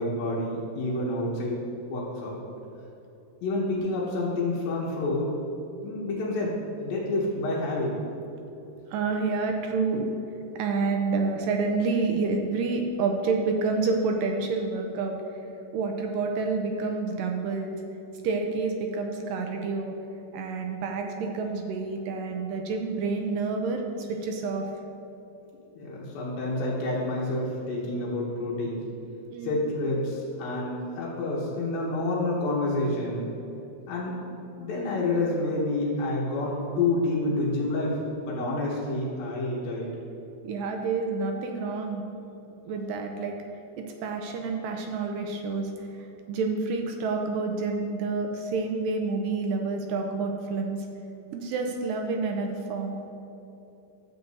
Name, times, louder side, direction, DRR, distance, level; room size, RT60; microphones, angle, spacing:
voice 1, 0.0-1.6 1.9-2.4 3.4-5.3 5.8-7.9 25.7-28.8 29.4-33.3 33.9-34.2 34.5-38.0 38.3-39.9, left 2 dB, 80° left, -6 dB, 2.9 m, -28 dB
voice 2, 8.9-10.1 10.6-15.2 15.7-17.7 18.2-19.9 20.3-23.8 24.1-24.6 29.3-29.6 38.4-38.6 40.4-42.0 42.7-43.4 43.8-45.7 46.3-50.8 51.3-53.0, right 4 dB, 80° right, 3 dB, 2.1 m, -28 dB
12.5 x 8.1 x 2.7 m, 2.9 s
omnidirectional pair, 4.3 m